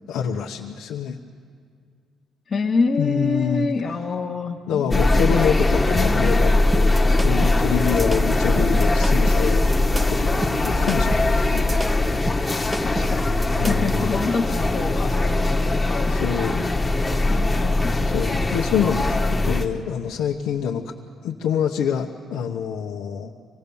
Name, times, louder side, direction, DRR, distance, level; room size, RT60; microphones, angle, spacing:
voice 1, 0.1-1.2 3.0-3.7 4.7-9.6 10.1-11.6 13.5-14.2 16.1-16.7 17.0-17.4 18.0-20.9 21.2-23.3, left 8 dB, 85° left, -1 dB, 0.9 m, -26 dB
voice 2, 2.5-6.4 12.8-16.2 17.3-18.1, left 4 dB, 35° left, -2 dB, 1.0 m, -27 dB
sound 1, 4.9-19.7, left 2 dB, 15° left, 1.2 m, -21 dB
sound 2, 6.7-14.0, right 2 dB, 10° right, 0.7 m, -32 dB
25.5 x 18.5 x 7.0 m, 2.2 s
cardioid pair, 125°, 0 cm